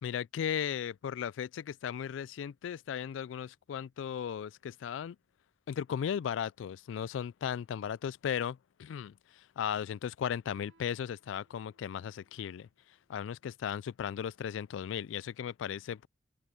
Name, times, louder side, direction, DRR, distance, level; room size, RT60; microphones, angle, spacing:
voice 1, 0.0-5.2 5.7-12.7 13.1-16.1, left 8 dB, 75° left, 0.3 m, -36 dB
Guitar, 10.4-13.7, right 3 dB, 70° right, 2.8 m, -68 dB
open air
head